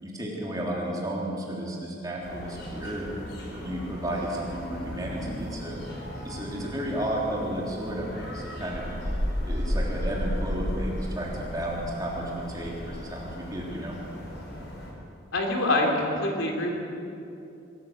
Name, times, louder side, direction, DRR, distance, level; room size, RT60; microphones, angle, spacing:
voice 1, 0.0-3.0 3.5-5.8 6.2-8.8 9.5-14.0, right 1 dB, 20° right, -3 dB, 3.5 m, -33 dB
sound 1, 2.2-14.9, equal, 60° left, 4.6 m, -34 dB
voice 2, 15.3-16.7, left 1 dB, 80° left, 1 dB, 3.4 m, -25 dB
23.0 x 14.5 x 8.0 m, 2.7 s
head